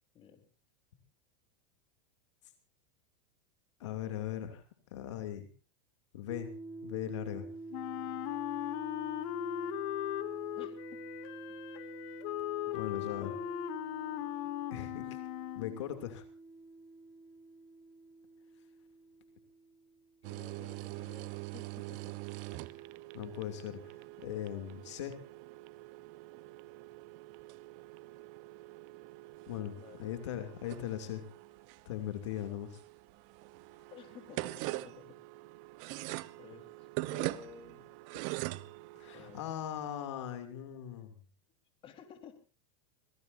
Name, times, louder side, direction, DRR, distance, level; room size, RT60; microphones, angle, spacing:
voice 1, 0.1-0.5 9.5-9.7 10.6-11.0 12.6-13.5 20.2-22.2 22.8-23.0 29.7-30.0 33.9-35.2 36.4-37.8 39.1-39.5 41.8-42.4, left 8 dB, 35° left, 7 dB, 4.1 m, -54 dB
voice 2, 3.8-4.6 4.9-5.5 6.1-6.5 6.8-7.5 12.7-13.3 14.7-15.2 15.5-16.2 23.1-25.2 29.5-31.2 31.8-32.8 39.0-41.1, left 11 dB, 75° left, 7 dB, 2.8 m, -39 dB
sound 1, 6.3-20.2, right 2 dB, 5° right, 1.1 m, -48 dB
Wind instrument woodwind instrument, 7.7-15.8, left 13 dB, 60° left, 2.0 m, -38 dB
sound 2, 20.2-39.4, right 20 dB, 55° right, 0.9 m, -44 dB
26.0 x 18.0 x 2.7 m, 0.34 s
supercardioid pair, 115°, 15 cm